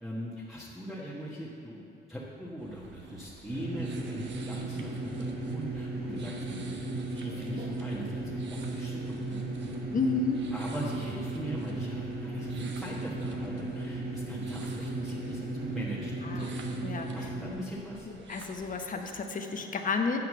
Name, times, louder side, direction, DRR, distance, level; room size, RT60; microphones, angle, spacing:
voice 1, 0.0-6.3 7.1-8.2 8.5-9.0 9.3-9.5 10.5-16.7 17.1-18.1, equal, ahead, -7 dB, 1.4 m, -40 dB
sound 1, 2.6-19.2, right 4 dB, 65° right, 1.2 m, -50 dB
sound 2, 3.5-17.5, right 2 dB, 50° right, 1.6 m, -36 dB
voice 2, 9.9-10.4 16.2-16.5 16.8-17.1 18.3-20.2, left 4 dB, 40° left, 4 dB, 0.9 m, -31 dB
9.6 x 5.8 x 7.6 m, 2.7 s
cardioid pair, 90°, 20 cm